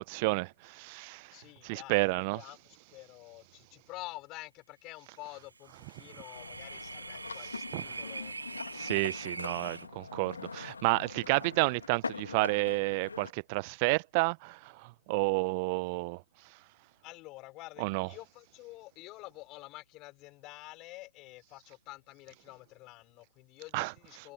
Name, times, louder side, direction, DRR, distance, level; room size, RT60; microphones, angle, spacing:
voice 1, 0.0-1.3 1.6-2.4 7.7-7.8 8.7-16.2 17.8-18.1 23.7-23.9, right 29 dB, 30° right, 0.9 m, -30 dB
voice 2, 1.3-8.3 17.0-24.3, left 20 dB, 25° left, 4.9 m, -48 dB
sound 1, 5.6-9.8, right 4 dB, 75° right, 2.1 m, -42 dB
sound 2, 6.3-13.3, left 4 dB, 70° left, 1.8 m, -43 dB
figure-of-eight pair, 130°, 0 cm